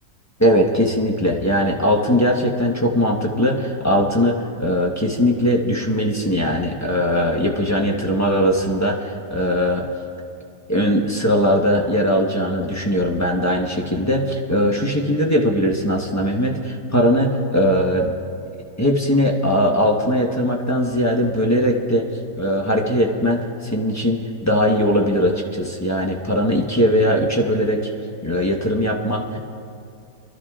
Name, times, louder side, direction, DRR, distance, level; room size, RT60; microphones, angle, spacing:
voice 1, 0.4-9.9 10.7-18.2 18.8-22.0 22.4-27.8 28.2-29.4, equal, 15° left, 0 dB, 0.8 m, -20 dB
26.0 x 13.0 x 2.4 m, 2.5 s
omnidirectional pair, 1.8 m